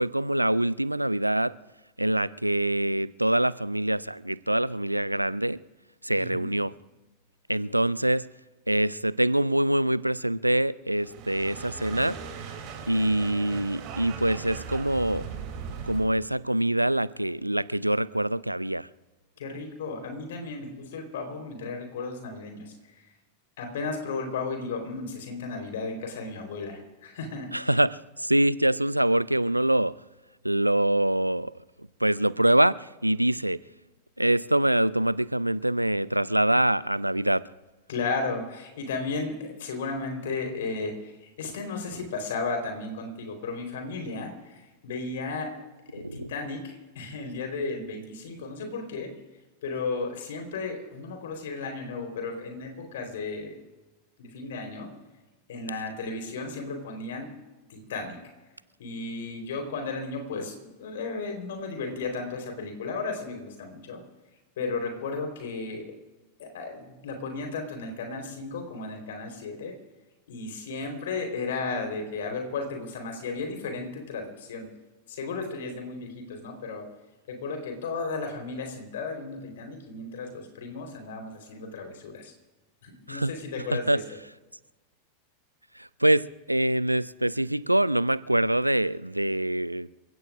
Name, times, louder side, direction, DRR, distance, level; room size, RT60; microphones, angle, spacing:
voice 1, 0.0-1.5 2.0-5.6 6.0-6.7 7.5-8.2 8.7-12.2 12.9-15.3 15.8-18.9 27.5-29.9 30.4-31.5 32.0-33.6 34.2-37.5 46.0-46.3 83.1-83.3 83.7-84.0 85.8-89.9, right 1 dB, 85° right, 0.4 m, -24 dB
voice 2, 6.2-6.5 19.4-22.7 23.6-27.7 37.9-45.5 45.9-49.1 49.6-53.5 54.2-54.9 55.5-57.3 57.7-58.2 58.8-64.0 64.6-65.9 66.4-69.8 70.3-74.7 75.1-76.9 77.3-82.3 82.8-84.0, left 3 dB, 60° left, 3.9 m, -34 dB
sound 1, 10.9-16.1, right 6 dB, 40° right, 2.9 m, -39 dB
28.5 x 16.0 x 2.5 m
figure-of-eight pair, 90°, 0 cm